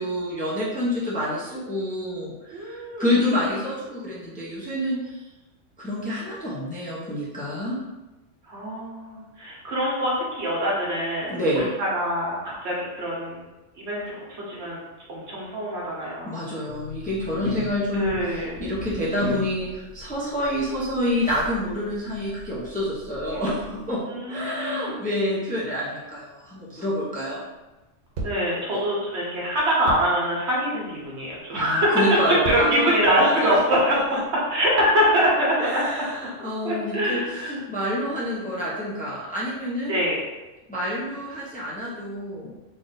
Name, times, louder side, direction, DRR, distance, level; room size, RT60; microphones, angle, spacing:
voice 1, 0.0-5.1 5.8-7.8 11.3-11.7 16.2-24.0 24.3-27.4 28.7-28.8 31.5-34.2 35.6-37.2 37.7-40.0 40.7-42.5, equal, 5° left, -8 dB, 0.8 m, -28 dB
voice 2, 2.5-3.1 3.3-3.4 8.5-13.4 13.8-14.8 15.1-16.3 17.9-18.6 24.0-25.0 28.2-34.0 34.5-35.8 36.6-37.6 39.9-40.2, equal, 60° right, -4 dB, 1.3 m, -24 dB
sound 1, 16.7-24.0, left 3 dB, 85° left, 1.0 m, -39 dB
sound 2, 28.2-28.6 29.9-30.2 31.0-31.3 32.1-32.9 33.5-34.4, right 3 dB, 85° right, 1.2 m, -34 dB
3.5 x 2.6 x 4.0 m, 1.1 s
omnidirectional pair, 1.3 m